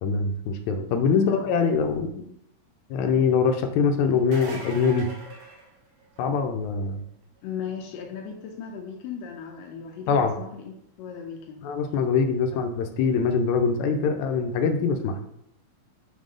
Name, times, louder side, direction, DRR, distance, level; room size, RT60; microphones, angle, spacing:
voice 1, 0.0-2.3 2.9-5.1 6.2-7.0 10.1-10.3 11.6-15.2, left 5 dB, 75° left, 6 dB, 1.9 m, -23 dB
sound 1, 4.1-6.4 11.9-12.0 13.8-13.9, right 3 dB, 70° right, 2.4 m, -41 dB
voice 2, 7.4-11.7 12.5-12.6, left 7 dB, 90° left, 1 dB, 2.4 m, -37 dB
7.5 x 3.7 x 5.1 m, 0.73 s
omnidirectional pair, 3.8 m